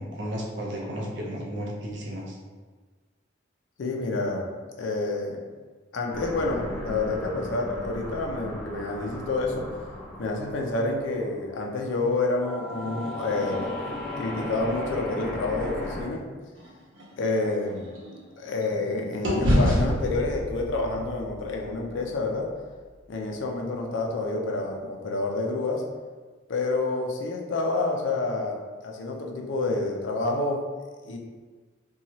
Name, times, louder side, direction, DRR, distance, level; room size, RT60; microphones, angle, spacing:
voice 1, 0.0-2.4, equal, 65° right, -2 dB, 0.6 m, -33 dB
voice 2, 3.8-4.5 4.8-5.4 5.9-9.7 10.2-13.7 14.2-16.2 17.2-17.9 18.4-22.5 23.1-25.8 26.5-30.6 31.0-31.2, left 3 dB, 75° left, 1 dB, 0.4 m, -28 dB
sound 1, 6.1-12.0 12.4-16.0, left 1 dB, 5° left, 0.5 m, -36 dB
sound 2, 16.5-18.9 19.2-23.5, equal, 80° right, 0.9 m, -29 dB
2.7 x 2.3 x 2.9 m, 1.4 s
head